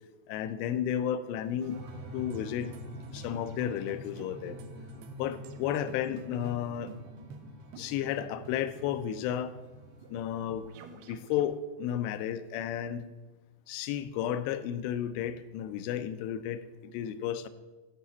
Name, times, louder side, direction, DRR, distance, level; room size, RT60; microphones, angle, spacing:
voice 1, 0.3-1.8 2.1-4.6 5.2-6.9 7.7-9.5 10.1-10.7 10.9-13.1 13.7-17.5, left 10 dB, 85° left, 12 dB, 2.8 m, -33 dB
sound 1, 1.4-11.5, right 4 dB, 80° right, 2.6 m, -52 dB
sound 2, 1.7-10.1, equal, 65° right, 3.0 m, -46 dB
13.5 x 5.8 x 4.1 m, 1.2 s
omnidirectional pair, 4.9 m